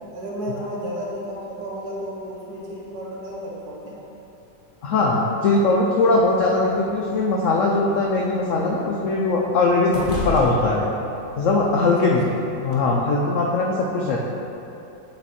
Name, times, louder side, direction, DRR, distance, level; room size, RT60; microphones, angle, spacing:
voice 1, 0.1-4.0 10.1-10.2 11.8-12.1, equal, 65° right, -5 dB, 1.5 m, -33 dB
voice 2, 4.8-10.9 11.4-14.3, left 3 dB, 90° left, -2 dB, 0.6 m, -20 dB
sound 1, 6.1-12.8, left 2 dB, 45° left, 0.6 m, -37 dB
7.5 x 3.1 x 4.1 m, 2.8 s
omnidirectional pair, 1.9 m